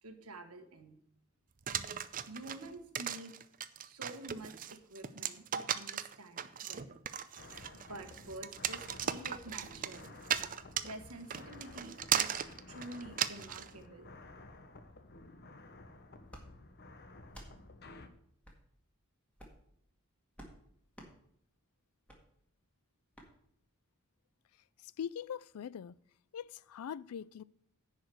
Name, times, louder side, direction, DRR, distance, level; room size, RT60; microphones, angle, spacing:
voice 1, 0.0-1.0 2.3-3.3 3.8-7.0 7.7-10.2 10.8-14.1, right 2 dB, 90° right, 1.5 m, -48 dB
sound 1, 1.7-13.7, right 9 dB, 40° right, 0.5 m, -37 dB
sound 2, 7.4-18.1, left 2 dB, 50° left, 1.0 m, -53 dB
sound 3, 16.3-16.5 17.3-17.5 18.4-18.6 19.3-19.6 20.3-20.6 20.9-21.1 22.1-22.2 23.1-23.3, equal, 5° left, 1.8 m, -52 dB
voice 2, 24.8-26.0 26.3-27.4, left 8 dB, 80° left, 0.4 m, -42 dB
10.5 x 5.0 x 7.7 m
head